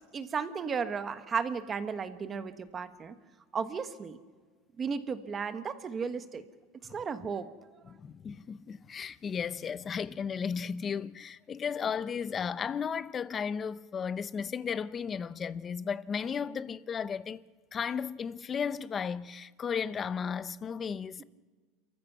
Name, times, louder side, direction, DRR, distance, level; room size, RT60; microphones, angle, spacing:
voice 1, 0.1-3.1 3.5-4.2 4.8-6.4 6.9-7.5, right 6 dB, 25° right, 1.2 m, -34 dB
voice 2, 7.9-17.4 17.7-21.2, left 6 dB, 25° left, 0.6 m, -34 dB
29.5 x 14.5 x 6.0 m
supercardioid pair, 150°, 0 cm